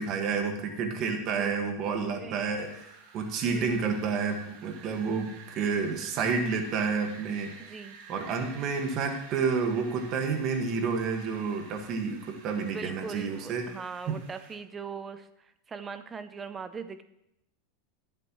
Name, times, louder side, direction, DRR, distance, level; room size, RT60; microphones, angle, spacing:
voice 1, 0.0-7.5 8.1-13.7 14.1-14.2, right 5 dB, 40° right, 4 dB, 1.7 m, -30 dB
voice 2, 1.1-1.6 2.2-2.4 3.4-3.8 7.6-8.0 12.6-17.0, right 5 dB, 20° right, 12 dB, 0.6 m, -41 dB
Wind, 2.6-14.5, right 5 dB, 80° right, 2.0 m, -51 dB
18.5 x 7.7 x 3.1 m, 0.83 s
supercardioid pair, 140°, 0 cm